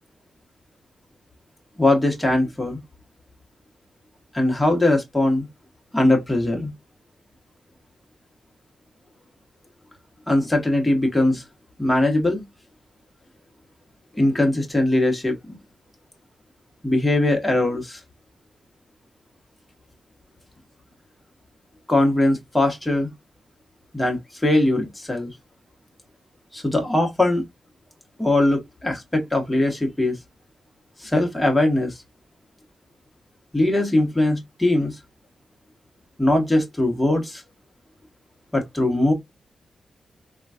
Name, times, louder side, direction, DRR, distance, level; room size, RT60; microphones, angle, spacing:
voice 1, 1.8-2.8 4.3-5.5 5.9-6.7 10.3-11.4 11.8-12.4 14.1-15.6 16.8-18.0 21.9-23.1 23.9-25.3 26.5-27.4 28.2-30.2 31.0-31.9 33.5-35.0 36.2-37.4 38.5-39.1, left 1 dB, 10° left, 1.1 m, -21 dB
3.8 x 2.3 x 2.3 m
cardioid pair, 95°, 0 cm